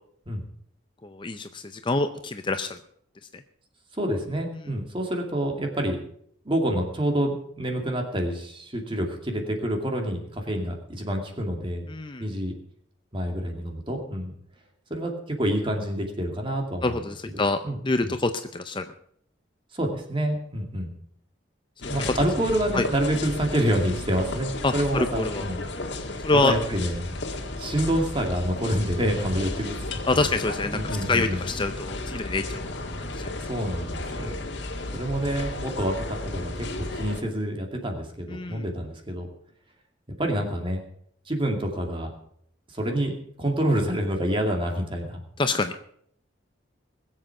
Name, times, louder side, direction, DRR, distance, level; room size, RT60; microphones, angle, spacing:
voice 1, 1.0-2.8 11.9-12.2 16.8-17.6 17.8-18.8 22.0-22.1 22.7-22.8 24.6-25.4 26.2-26.6 30.1-30.8 31.1-32.7 33.1-33.3 34.2-34.4 38.3-38.6 45.4-45.7, left 3 dB, 25° left, 9 dB, 0.6 m, -26 dB
voice 2, 3.9-6.0 6.4-11.9 12.2-12.5 13.1-14.3 14.9-18.1 19.7-20.9 21.9-25.7 26.3-27.1 27.6-29.8 30.1-30.3 30.7-31.4 33.4-34.3 34.9-39.3 40.2-40.8 41.3-42.1 42.7-43.1 43.4-45.2, right 1 dB, 25° right, 2 dB, 2.5 m, -27 dB
sound 1, 21.8-37.2, left 2 dB, 60° left, 1.8 m, -34 dB
20.5 x 7.7 x 6.0 m, 0.66 s
head